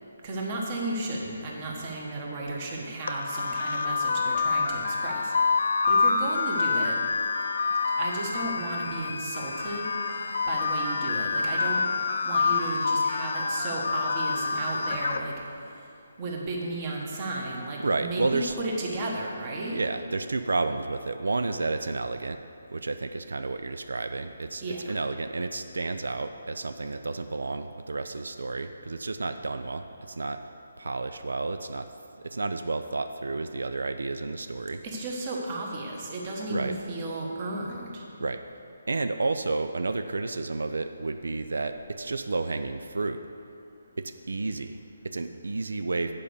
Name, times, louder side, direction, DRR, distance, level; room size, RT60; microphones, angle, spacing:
voice 1, 0.2-5.3 5.9-7.0 8.0-9.9 10.5-11.8 12.2-15.3 16.2-19.8 24.6-24.9 34.8-38.0, right 2 dB, 25° right, -1 dB, 1.2 m, -34 dB
sound 1, 3.1-15.2, left 4 dB, 60° left, 0.5 m, -27 dB
voice 2, 17.8-18.6 19.7-22.4 22.7-30.4 30.8-31.9 32.2-34.8 36.5-36.8 38.2-38.4 38.9-43.2 44.0-46.1, right 3 dB, 90° right, 8 dB, 0.4 m, -31 dB
8.5 x 5.1 x 6.9 m, 2.6 s
hypercardioid pair, 170°, 0 cm